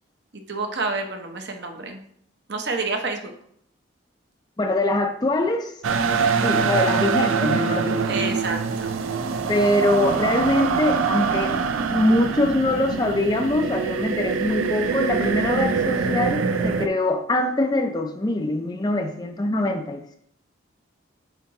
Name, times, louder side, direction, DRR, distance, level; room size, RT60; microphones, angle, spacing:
voice 1, 0.5-2.0 2.5-3.3 8.1-8.9, right 3 dB, 55° right, 4 dB, 0.8 m, -28 dB
voice 2, 4.6-5.7 6.4-8.2 9.5-11.6 11.9-20.2, left 1 dB, 20° left, 5 dB, 0.5 m, -23 dB
sound 1, 5.8-16.9, right 5 dB, 80° right, 0.5 m, -24 dB
8.0 x 2.8 x 4.7 m, 0.66 s
head